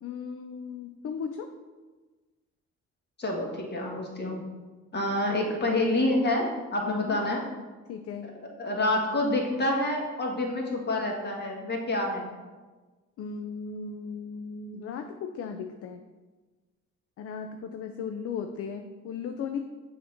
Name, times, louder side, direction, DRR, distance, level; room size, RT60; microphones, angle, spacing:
voice 1, 0.0-1.5 6.9-7.2 7.9-8.4 13.2-16.0 17.2-19.6, left 6 dB, 50° left, 6 dB, 0.4 m, -36 dB
voice 2, 3.2-4.4 4.9-7.4 8.6-12.3, left 1 dB, 35° left, -1 dB, 1.4 m, -27 dB
6.6 x 2.8 x 5.0 m, 1.3 s
cardioid pair, 90°, 30 cm